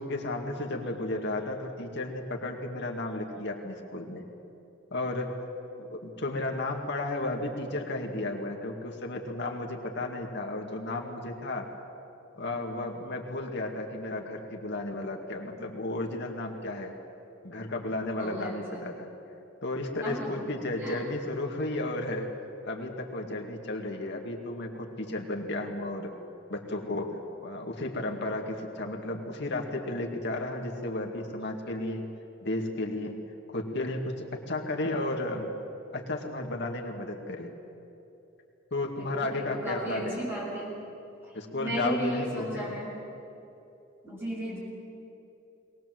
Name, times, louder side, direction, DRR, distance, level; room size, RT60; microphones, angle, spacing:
voice 1, 0.0-4.2 4.9-5.3 5.8-11.7 12.4-16.9 17.4-19.1 19.6-22.3 22.6-26.1 26.5-32.1 32.4-33.2 33.5-35.5 35.9-37.5 38.7-40.2 41.3-42.7, left 2 dB, 60° left, 1 dB, 2.3 m, -33 dB
voice 2, 18.2-18.8 20.0-20.3 20.8-21.0 39.0-40.8 41.6-43.0 44.0-44.6, right 1 dB, 10° right, -5 dB, 7.4 m, -35 dB
22.5 x 19.5 x 7.8 m, 2.9 s
head